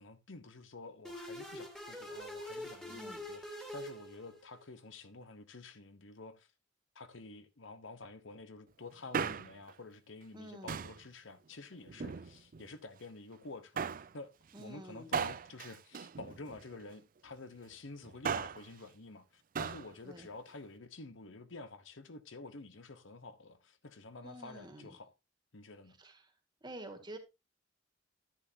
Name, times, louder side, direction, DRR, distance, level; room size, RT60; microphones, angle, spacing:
voice 1, 0.0-6.5 6.9-14.3 14.6-25.1 25.5-26.0, left 3 dB, 80° left, 1.1 m, -50 dB
sound 1, 1.0-4.6, left 1 dB, 5° left, 2.1 m, -45 dB
voice 2, 2.9-3.2 10.3-10.8 14.5-15.1 20.0-20.3 24.2-25.0 26.0-26.3 26.6-27.2, right 1 dB, 25° right, 1.9 m, -49 dB
Male speech man speaking, 8.9-9.7 10.7-11.1 11.9-12.7 13.8-14.1 15.1-16.8 18.0-18.7 19.6-19.9 20.2-20.3, right 6 dB, 45° right, 0.5 m, -37 dB
10.5 x 10.0 x 2.8 m
head